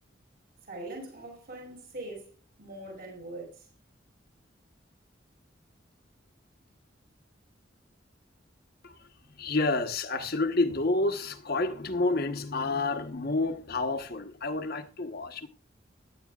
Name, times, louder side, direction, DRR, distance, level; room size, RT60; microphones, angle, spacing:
voice 1, 0.6-2.3 2.6-3.7, right 2 dB, 55° right, 6.1 m, -42 dB
voice 2, 8.8-15.5, left 2 dB, 55° left, 1.2 m, -29 dB
16.5 x 10.5 x 2.4 m
head